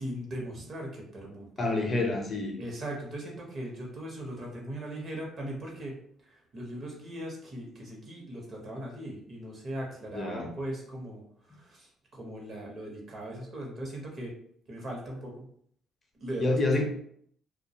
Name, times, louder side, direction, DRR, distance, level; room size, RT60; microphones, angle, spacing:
voice 1, 0.0-1.7 2.6-5.9 6.2-14.3 14.7-15.5 16.2-16.6, right 1 dB, 45° right, -1 dB, 0.8 m, -39 dB
voice 2, 1.6-2.6 10.1-10.5 16.4-16.8, left 2 dB, 35° left, 1 dB, 0.6 m, -28 dB
2.3 x 2.2 x 2.7 m, 0.64 s
cardioid pair, 95°, 0 cm